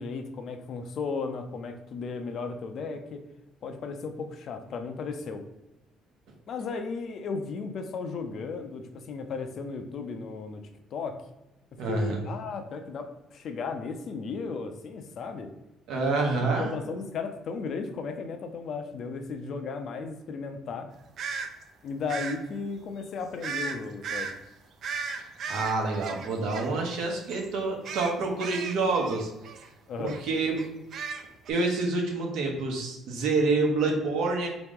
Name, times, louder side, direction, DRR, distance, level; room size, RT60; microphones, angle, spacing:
voice 1, 0.0-3.2 3.6-5.4 6.5-10.6 10.9-11.2 11.9-15.5 16.2-20.9 21.8-24.3 29.9-30.2, left 4 dB, 45° left, 6 dB, 0.4 m, -35 dB
voice 2, 11.8-12.2 15.9-16.7 25.5-29.3 30.0-30.6 31.5-34.5, right 3 dB, 80° right, 1 dB, 1.0 m, -27 dB
sound 1, 21.2-21.5 22.1-22.4 23.4-23.8 24.0-24.3 24.8-27.0 27.3-27.5 27.8-29.7 30.1-30.2 30.6-31.5, right 5 dB, 45° right, 0.4 m, -35 dB
3.7 x 3.0 x 3.5 m, 0.98 s
cardioid pair, 160°, 0 cm